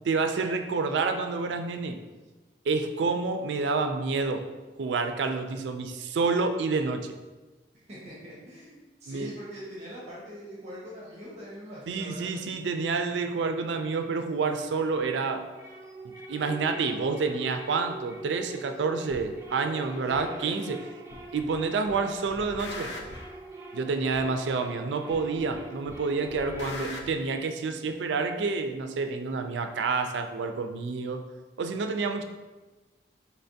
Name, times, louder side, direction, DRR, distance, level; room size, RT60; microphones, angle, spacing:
voice 1, 0.0-2.0 2.7-4.4 4.8-7.1 9.1-9.3 11.9-15.4 16.3-20.8 21.3-22.9 23.7-31.2 31.6-32.2, right 4 dB, 90° right, 7 dB, 0.4 m, -28 dB
voice 2, 7.9-12.3 20.1-20.6, equal, 40° right, -7 dB, 0.9 m, -43 dB
sound 1, 15.3-26.8, right 2 dB, 15° right, 0.5 m, -44 dB
sound 2, 19.1-19.2 20.1-20.2 21.1-21.6 21.9-23.3 24.1-24.2 25.1-25.6 25.9-27.1, left 2 dB, 75° left, 0.5 m, -41 dB
4.2 x 3.3 x 2.7 m, 1.2 s
head